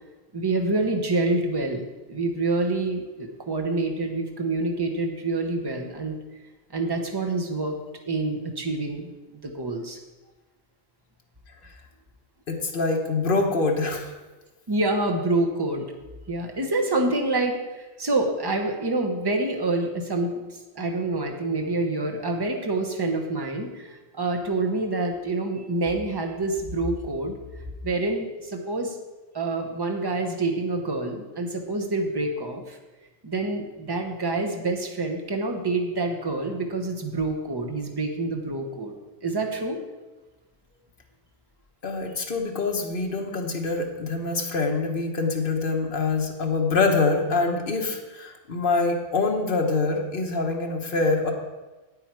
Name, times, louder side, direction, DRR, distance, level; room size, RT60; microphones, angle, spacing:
voice 1, 0.3-1.8 2.1-6.2 6.7-7.7 8.1-10.0 14.7-15.8 16.3-20.4 20.7-27.3 27.8-29.0 29.3-32.8 33.2-38.9 39.2-39.8, right 2 dB, 25° right, 3 dB, 1.0 m, -27 dB
voice 2, 12.5-14.1 41.8-51.3, left 3 dB, 60° left, 1 dB, 1.3 m, -25 dB
8.9 x 8.6 x 4.7 m, 1.2 s
omnidirectional pair, 1.0 m